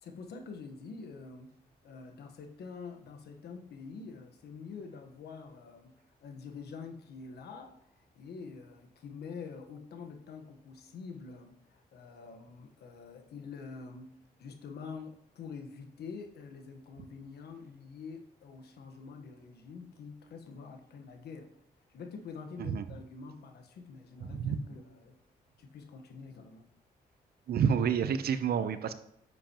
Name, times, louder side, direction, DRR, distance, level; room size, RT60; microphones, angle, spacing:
voice 1, 0.0-1.5 1.8-14.1 14.4-21.5 21.9-25.2 25.6-26.7, left 5 dB, 80° left, 6 dB, 1.3 m, -46 dB
voice 2, 24.3-24.6 27.5-28.9, right 7 dB, 70° right, 11 dB, 0.7 m, -29 dB
10.0 x 7.7 x 3.0 m, 0.72 s
cardioid pair, 70°, 17 cm